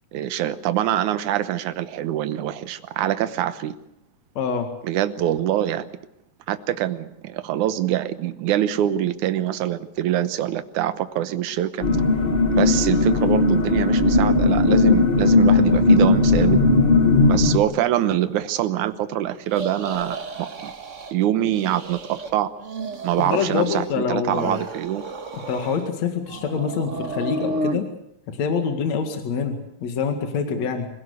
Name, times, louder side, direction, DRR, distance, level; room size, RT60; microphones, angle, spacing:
voice 1, 0.1-3.8 4.8-5.9 6.5-11.8 12.5-16.6 17.3-20.7 21.1-22.5 23.0-25.0, right 12 dB, 80° right, 11 dB, 2.5 m, -24 dB
voice 2, 4.4-4.7 23.2-24.6 25.5-27.8 28.3-30.9, left 6 dB, 65° left, 5 dB, 3.2 m, -25 dB
sound 1, 11.8-17.6, left 3 dB, 35° left, 0.9 m, -17 dB
sound 2, 19.5-21.1 21.4-22.3 22.6-24.0 24.3-25.9 26.3-27.8, right 2 dB, 40° right, 1.1 m, -33 dB
25.0 x 17.0 x 8.1 m, 0.79 s
omnidirectional pair, 3.5 m